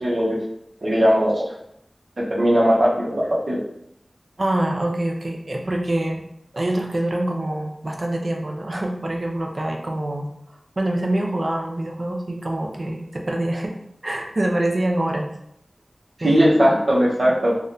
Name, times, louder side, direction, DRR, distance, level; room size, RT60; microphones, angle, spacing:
voice 1, 0.0-0.4 0.8-1.4 2.2-3.6 16.2-17.5, equal, 75° right, -5 dB, 0.9 m, -18 dB
voice 2, 4.4-6.2 6.5-13.7 14.0-15.3 16.2-16.6, right 1 dB, 55° right, 1 dB, 0.4 m, -25 dB
3.4 x 2.2 x 2.6 m, 0.76 s
wide cardioid pair, 45°, 0 cm